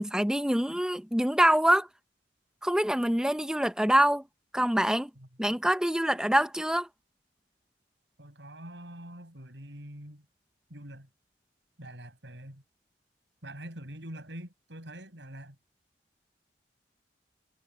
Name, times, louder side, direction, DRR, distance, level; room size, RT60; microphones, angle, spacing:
voice 1, 0.0-1.9 2.6-4.2 4.5-5.1 5.4-6.9, right 1 dB, 5° right, 0.7 m, -25 dB
voice 2, 8.2-10.3 10.7-11.1 11.8-12.6 13.4-15.6, right 1 dB, 70° right, 7.2 m, -44 dB
head